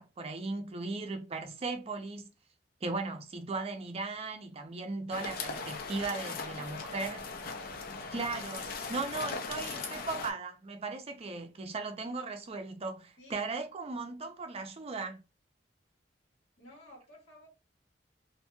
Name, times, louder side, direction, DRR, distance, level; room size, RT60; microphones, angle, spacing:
voice 1, 0.0-2.3 2.8-7.2 8.1-15.2, right 3 dB, 35° right, 0.5 m, -37 dB
sound 1, 5.1-10.3, left 4 dB, 55° left, 0.5 m, -39 dB
voice 2, 6.5-7.5 9.6-10.1 13.2-13.4 16.6-17.5, equal, 70° left, 1.5 m, -56 dB
2.9 x 2.6 x 2.2 m
head